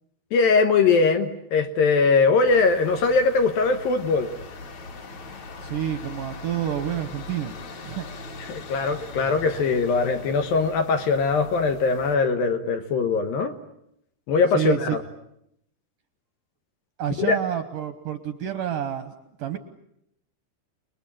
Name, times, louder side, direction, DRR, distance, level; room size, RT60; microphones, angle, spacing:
voice 1, 0.3-4.3 8.4-13.5 14.3-15.0 17.2-17.4, left 4 dB, 70° left, 7 dB, 2.6 m, -21 dB
sound 1, 2.5-12.1, left 3 dB, 45° left, 3.7 m, -40 dB
voice 2, 5.6-7.5 7.8-8.1 14.5-15.0 17.0-19.1 19.4-19.6, right 10 dB, 70° right, 9 dB, 2.1 m, -28 dB
29.0 x 21.0 x 8.8 m, 0.78 s
omnidirectional pair, 5.0 m